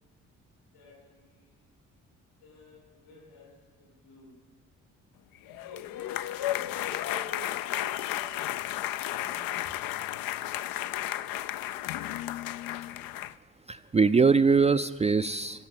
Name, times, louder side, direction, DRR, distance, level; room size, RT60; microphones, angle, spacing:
voice 1, 0.7-1.5 2.4-4.4 5.4-11.2, left 1 dB, 75° left, -2 dB, 6.0 m, -52 dB
sound 1, 5.5-13.3, left 14 dB, 60° left, 0.5 m, -33 dB
voice 2, 13.7-15.7, right 5 dB, 20° right, 10 dB, 0.4 m, -22 dB
14.5 x 7.9 x 8.9 m, 1.3 s
hypercardioid pair, 45°, 39 cm